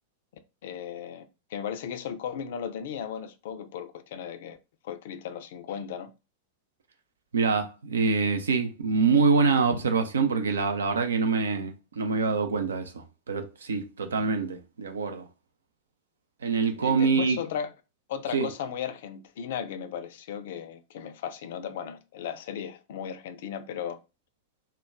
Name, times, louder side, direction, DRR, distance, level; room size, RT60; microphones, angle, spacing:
voice 1, 0.6-4.6 4.8-6.1 16.8-17.7 18.1-24.0, left 8 dB, 55° left, 0.3 m, -36 dB
voice 2, 7.3-15.3 16.4-17.4 18.3-18.5, right 5 dB, 70° right, 0.4 m, -25 dB
2.2 x 2.2 x 3.4 m
figure-of-eight pair, 90°, 0 cm